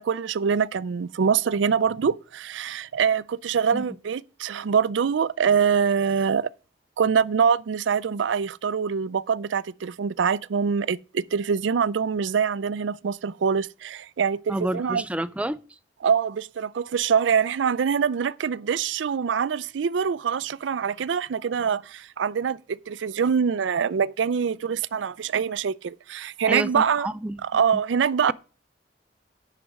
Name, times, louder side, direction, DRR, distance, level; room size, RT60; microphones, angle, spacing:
voice 1, 0.0-6.5 7.0-15.0 16.0-27.1 27.4-28.3, right 6 dB, 85° right, 0.4 m, -24 dB
voice 2, 14.5-15.6 26.5-27.4, right 1 dB, 5° right, 0.3 m, -29 dB
10.0 x 5.8 x 5.1 m
head